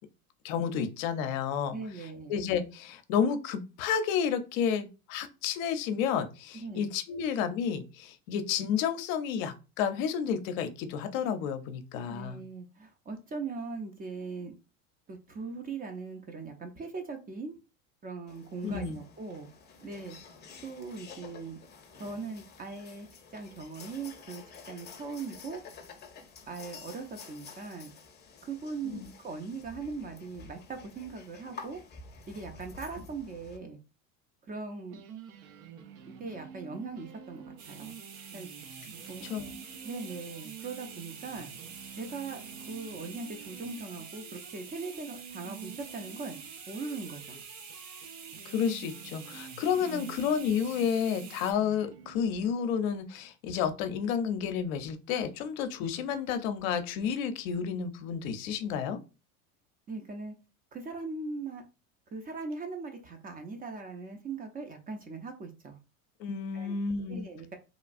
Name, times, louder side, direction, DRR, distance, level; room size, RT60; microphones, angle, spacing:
voice 1, 0.4-1.8 2.3-12.4 18.6-19.0 28.8-29.1 39.2-39.6 48.5-59.0 66.2-67.2, left 7 dB, 65° left, 0.6 m, -31 dB
voice 2, 1.7-2.4 6.5-6.9 12.0-14.6 15.1-17.5 18.0-19.5 19.8-20.2 20.6-21.6 22.0-23.1 23.3-25.6 26.5-27.9 28.4-31.8 32.3-33.8 34.5-35.0 36.2-38.0 38.3-38.5 39.1-39.3 39.8-41.5 42.0-42.4 42.7-46.4 46.7-47.4 49.8-50.2 59.9-60.3 60.7-61.6 62.1-65.8 66.5-66.8 67.1-67.6, right 4 dB, 20° right, 0.4 m, -40 dB
sound 1, 18.3-33.6, left 5 dB, 25° left, 0.6 m, -50 dB
sound 2, 34.5-34.6 34.9-52.2, right 7 dB, 75° right, 0.6 m, -49 dB
sound 3, 37.6-51.5, right 6 dB, 55° right, 0.9 m, -47 dB
3.0 x 2.3 x 2.5 m
hypercardioid pair, 90°, 43 cm